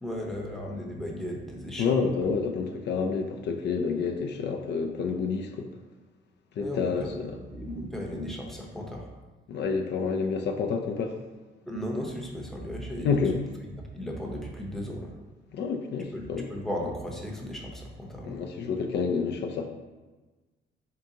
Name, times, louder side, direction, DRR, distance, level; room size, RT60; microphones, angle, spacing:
voice 1, 0.0-2.3 6.6-9.1 11.7-15.1 16.1-18.4, equal, ahead, -1 dB, 0.7 m, -36 dB
voice 2, 1.8-5.7 6.6-7.0 9.5-11.1 13.0-13.4 15.5-16.5 18.2-19.7, left 5 dB, 60° left, 3 dB, 0.4 m, -28 dB
3.7 x 3.5 x 2.8 m, 1.2 s
cardioid pair, 90°, 20 cm